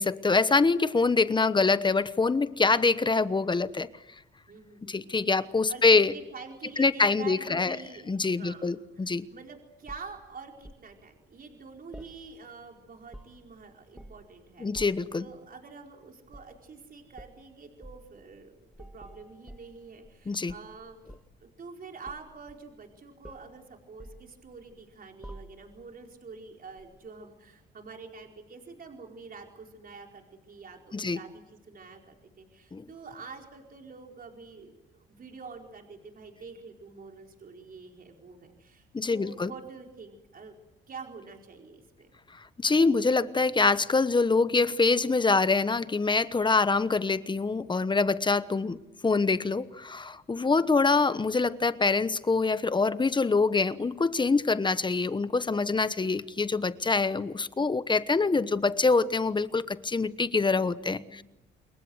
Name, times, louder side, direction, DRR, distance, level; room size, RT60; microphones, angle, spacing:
voice 1, 0.0-3.9 4.9-6.1 6.8-7.8 8.1-9.2 14.6-15.2 20.3-20.5 30.9-31.2 32.7-32.9 38.9-39.5 42.6-48.8 49.0-61.2, left 4 dB, 25° left, 1.1 m, -25 dB
voice 2, 4.5-14.8 15.2-21.0 21.4-34.7 35.1-40.5 40.9-42.1 50.5-50.6 61.0-61.2, right 4 dB, 45° right, 4.6 m, -47 dB
sound 1, 9.9-10.9 11.9-12.7 12.9-13.5 14.0-14.3 14.7-15.2 16.3-16.6 17.1-17.4 17.8-18.1 18.7-20.2 20.5-21.4 22.1-22.9 23.2-23.5 24.0-24.8 25.2-25.8 26.8-26.9, right 1 dB, 5° right, 2.1 m, -48 dB
28.0 x 22.0 x 8.0 m
cardioid pair, 90°, 20 cm